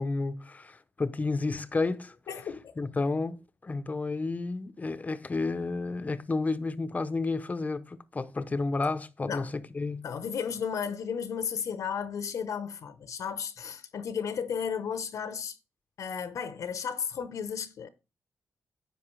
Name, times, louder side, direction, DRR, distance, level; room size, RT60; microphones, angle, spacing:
voice 1, 0.0-2.2 2.8-10.1, left 3 dB, 25° left, 0.8 m, -31 dB
voice 2, 2.3-2.8 9.3-9.5 10.0-15.6 16.0-17.9, left 7 dB, 70° left, 0.9 m, -34 dB
10.0 x 6.4 x 3.2 m
cardioid pair, 105°, 6 cm